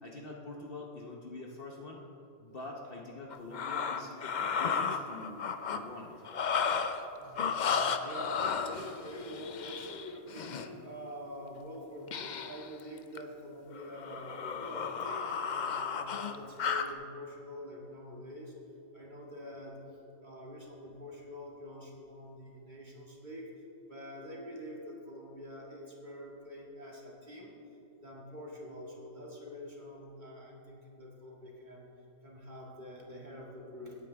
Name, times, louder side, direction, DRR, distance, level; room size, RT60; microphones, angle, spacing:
voice 1, 0.0-2.0 2.4-6.1 7.2-7.4, left 2 dB, 45° left, -1 dB, 1.0 m, -45 dB
sound 1, 3.3-5.8 6.2-7.1 7.4-10.7 12.1-12.7 13.0-13.2 13.7-16.9, left 6 dB, 60° left, 0.4 m, -34 dB
voice 2, 7.2-18.5 18.9-19.8 20.2-23.5 23.8-27.6 28.0-31.9 32.2-34.0, left 1 dB, 35° right, -3 dB, 2.1 m, -46 dB
17.5 x 8.8 x 3.4 m, 2.8 s
omnidirectional pair, 1.4 m